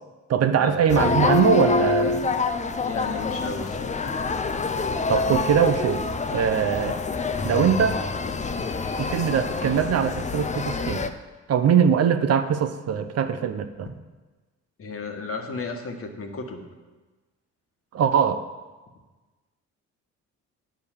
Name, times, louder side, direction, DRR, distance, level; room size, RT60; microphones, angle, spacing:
voice 1, 0.3-2.2 5.1-6.0 6.3-7.0 7.4-8.0 9.0-11.0 11.5-13.9 17.9-18.4, right 7 dB, 55° right, 9 dB, 0.7 m, -22 dB
sound 1, 0.9-11.1, left 4 dB, 25° left, 0.6 m, -26 dB
voice 2, 2.8-4.0 14.8-16.7, left 4 dB, 50° left, 4 dB, 1.4 m, -34 dB
8.6 x 5.1 x 7.3 m, 1.2 s
cardioid pair, 90°, 30 cm